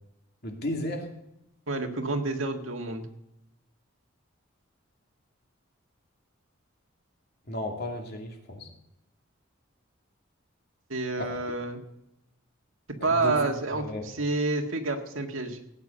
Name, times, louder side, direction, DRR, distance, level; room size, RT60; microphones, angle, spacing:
voice 1, 0.4-1.1 7.5-8.7 11.2-11.3 13.0-13.3 13.8-14.1, left 1 dB, 50° left, 2 dB, 2.5 m, -34 dB
voice 2, 1.7-3.1 10.9-11.8 13.0-15.6, right 3 dB, 85° right, 4 dB, 1.8 m, -29 dB
17.0 x 9.4 x 5.5 m, 0.86 s
head